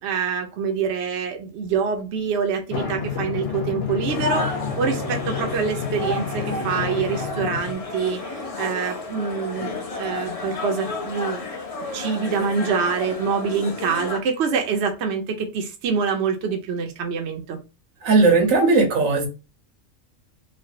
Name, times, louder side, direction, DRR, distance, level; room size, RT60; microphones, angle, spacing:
voice 1, 0.0-11.5 11.9-17.6, right 6 dB, 65° right, 4 dB, 0.8 m, -25 dB
Drum, 2.7-7.7, left 6 dB, 65° left, 0.9 m, -29 dB
sound 1, 4.1-14.2, left 3 dB, 45° left, 0.5 m, -32 dB
voice 2, 18.0-19.3, right 3 dB, 80° right, 4 dB, 1.3 m, -17 dB
3.1 x 2.2 x 2.6 m, 0.29 s
omnidirectional pair, 1.4 m